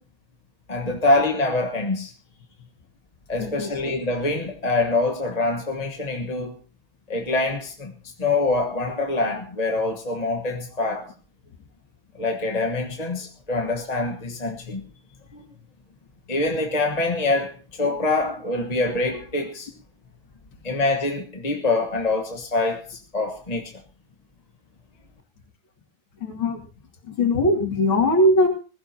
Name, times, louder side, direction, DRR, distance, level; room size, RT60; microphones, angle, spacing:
voice 1, 0.7-2.1 3.3-6.5 7.1-7.9 8.2-11.1 12.2-14.8 15.3-15.5 16.3-19.7 20.6-23.8, left 2 dB, 25° left, 1.2 m, -25 dB
voice 2, 3.4-3.7 26.2-26.6 27.1-28.5, left 1 dB, 75° left, 3.2 m, -20 dB
21.5 x 15.0 x 2.9 m
omnidirectional pair, 2.2 m